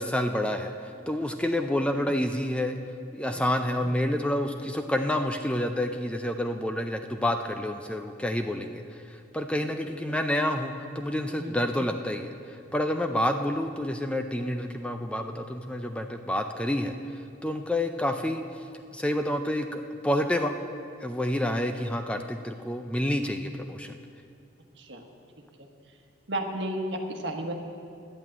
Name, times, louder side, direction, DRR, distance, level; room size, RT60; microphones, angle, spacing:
voice 1, 0.0-2.8 3.1-18.4 18.9-20.5 21.0-24.0, left 1 dB, 5° left, 6 dB, 0.4 m, -29 dB
voice 2, 26.3-27.6, right 1 dB, 65° right, 3 dB, 1.3 m, -33 dB
11.0 x 8.4 x 8.7 m, 2.4 s
head